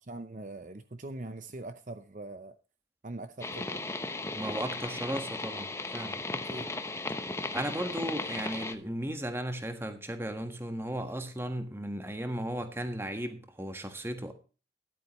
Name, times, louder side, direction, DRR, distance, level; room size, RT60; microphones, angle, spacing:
voice 1, 0.1-2.5 3.0-3.8 6.5-6.7, right 2 dB, 45° right, 10 dB, 0.7 m, -42 dB
sound 1, 3.4-8.7, left 2 dB, 15° left, 0.8 m, -36 dB
voice 2, 4.3-6.2 7.5-14.3, right 1 dB, 15° right, 7 dB, 1.5 m, -35 dB
13.5 x 11.5 x 3.1 m, 0.35 s
head